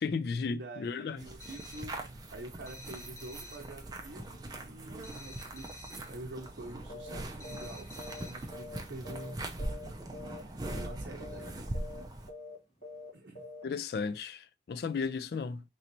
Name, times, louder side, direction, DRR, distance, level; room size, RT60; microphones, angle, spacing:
voice 1, 0.0-1.2 13.6-15.6, left 5 dB, 60° left, 0.3 m, -34 dB
voice 2, 0.5-2.0 2.3-9.4 10.7-11.7 13.1-13.5, right 2 dB, 70° right, 0.7 m, -47 dB
sound 1, 1.2-12.3, right 1 dB, 20° right, 0.5 m, -41 dB
sound 2, 1.4-2.0 2.7-3.7 5.0-6.1 7.4-8.5, left 2 dB, 15° left, 0.7 m, -51 dB
sound 3, 6.9-7.2 7.4-7.7 8.0-9.3 9.6-9.9 10.1-10.4 10.7-10.9 11.2-11.5 11.7-12.0 12.3-12.5 12.8-13.1 13.3-13.6, left 2 dB, 40° left, 1.4 m, -45 dB
4.0 x 3.1 x 2.9 m
head